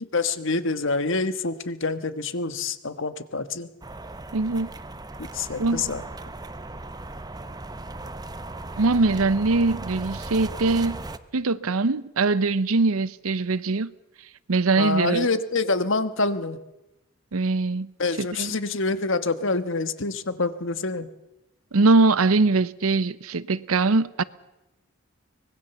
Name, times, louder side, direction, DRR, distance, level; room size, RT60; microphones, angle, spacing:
voice 1, 0.1-3.7 5.2-6.0 14.8-16.6 18.0-21.1, left 3 dB, 60° left, 1.4 m, -26 dB
sound 1, 3.8-11.2, right 2 dB, 20° right, 0.8 m, -37 dB
voice 2, 4.3-4.7 5.6-5.9 8.7-11.0 11.3-13.9 14.5-15.3 17.3-17.9 18.2-18.5 21.7-24.2, right 3 dB, 85° right, 0.8 m, -22 dB
24.5 x 21.0 x 7.0 m
head